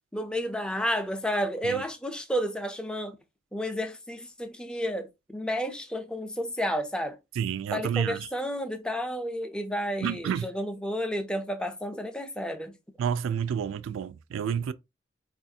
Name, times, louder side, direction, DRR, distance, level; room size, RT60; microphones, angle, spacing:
voice 1, 0.1-3.2 3.5-7.2 7.7-12.8, equal, 5° left, 0.3 m, -31 dB
voice 2, 7.4-8.2 10.0-10.5 13.0-14.7, right 8 dB, 90° right, 0.3 m, -29 dB
3.9 x 2.4 x 2.7 m
head